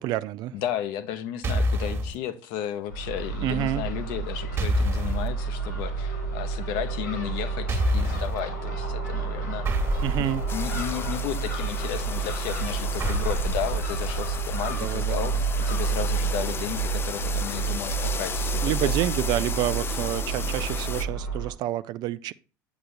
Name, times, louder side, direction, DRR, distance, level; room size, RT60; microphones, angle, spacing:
voice 1, 0.0-0.5 3.4-3.8 10.0-10.4 14.7-15.4 18.6-22.3, right 14 dB, 45° right, 0.5 m, -28 dB
voice 2, 0.5-9.8 10.5-18.9, left 9 dB, 55° left, 0.9 m, -33 dB
sound 1, 1.4-2.1 4.6-5.3 7.7-8.4 9.6-11.1 13.0-14.4, equal, 25° right, 1.5 m, -27 dB
Crow / Gull seagull, 2.9-21.5, right 4 dB, 80° left, 2.7 m, -30 dB
sound 2, 10.5-21.1, left 6 dB, 25° left, 0.5 m, -35 dB
8.7 x 7.0 x 2.5 m
figure-of-eight pair, 70°, 10 cm